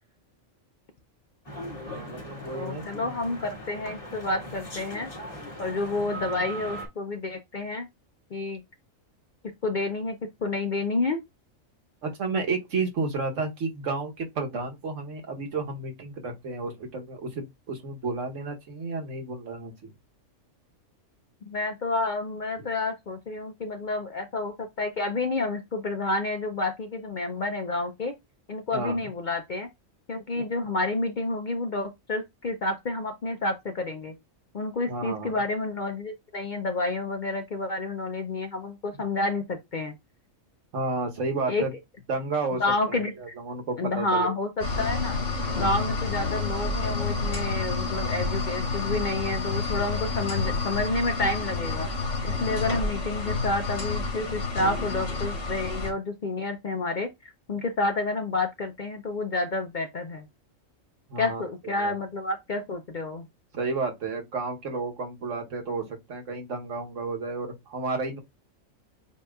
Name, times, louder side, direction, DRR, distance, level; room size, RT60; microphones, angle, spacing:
sound 1, 1.4-6.9, right 1 dB, 25° left, 2.5 m, -39 dB
voice 1, 1.9-3.1 12.0-19.9 28.7-29.0 30.3-30.4 34.9-35.4 40.7-41.7 42.1-42.6 42.9-44.3 61.1-61.9 63.5-68.2, right 3 dB, 70° right, 1.4 m, -32 dB
voice 2, 2.5-5.1 5.6-7.9 8.3-8.6 9.6-11.2 21.4-28.1 28.5-29.7 30.1-34.1 34.5-39.9 41.5-41.7 42.6-43.3 43.8-45.2 45.6-51.9 52.2-60.2 61.2-63.3, left 2 dB, 50° left, 0.6 m, -29 dB
sound 2, 44.6-55.9, left 3 dB, 70° left, 2.0 m, -29 dB
8.3 x 2.8 x 2.3 m
omnidirectional pair, 1.4 m